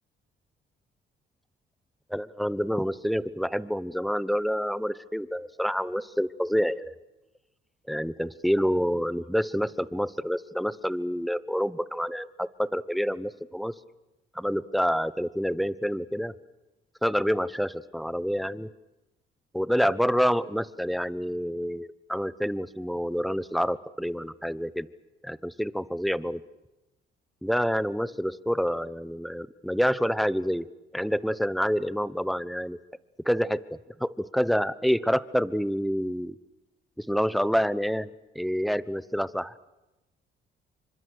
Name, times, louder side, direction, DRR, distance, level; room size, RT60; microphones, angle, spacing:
voice 1, 2.1-6.9 7.9-13.7 14.3-16.3 17.0-18.7 19.5-24.9 25.2-26.4 27.4-30.7 30.9-32.8 33.2-36.4 37.0-38.1 38.3-39.5, equal, ahead, 17 dB, 1.0 m, -27 dB
27.5 x 25.5 x 6.7 m, 1.0 s
cardioid pair, 90°, 20 cm